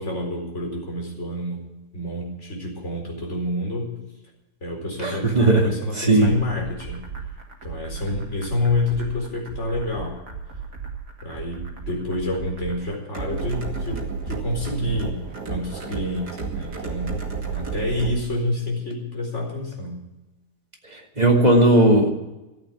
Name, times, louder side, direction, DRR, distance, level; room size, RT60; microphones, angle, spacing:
voice 1, 0.0-1.7 1.9-4.0 4.6-7.1 7.6-10.2 11.2-14.0 14.3-15.2 15.5-20.1, left 1 dB, 45° left, 0 dB, 4.7 m, -28 dB
voice 2, 5.0-5.6 6.0-6.3 20.9-22.1, right 1 dB, 25° right, 1 dB, 2.3 m, -17 dB
sound 1, 6.2-18.2, right 5 dB, 75° right, 2.5 m, -33 dB
14.0 x 8.8 x 8.5 m, 1.0 s
omnidirectional pair, 1.7 m